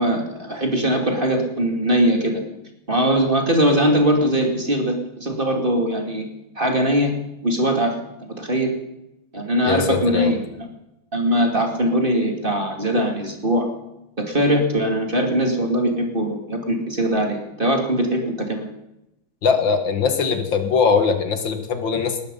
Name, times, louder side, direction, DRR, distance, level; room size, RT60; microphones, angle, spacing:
voice 1, 0.0-2.4 2.9-6.2 6.6-7.1 7.4-8.7 9.3-10.7 11.1-13.7 14.2-18.7, equal, 25° right, 3 dB, 2.6 m, -21 dB
voice 2, 9.7-10.3 19.4-22.3, left 5 dB, 70° left, 7 dB, 2.3 m, -21 dB
20.0 x 12.5 x 5.5 m, 0.90 s
omnidirectional pair, 2.2 m